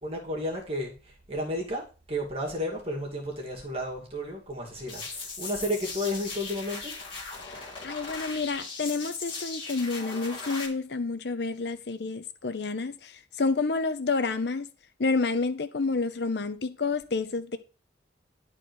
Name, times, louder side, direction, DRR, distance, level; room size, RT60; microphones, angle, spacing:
voice 1, 0.0-6.9, equal, 30° right, 2.4 m, -32 dB
sound 1, 4.9-10.7, left 4 dB, 30° left, 3.3 m, -38 dB
voice 2, 7.8-14.7 15.0-17.6, left 4 dB, 60° left, 0.7 m, -29 dB
11.5 x 4.5 x 6.2 m
head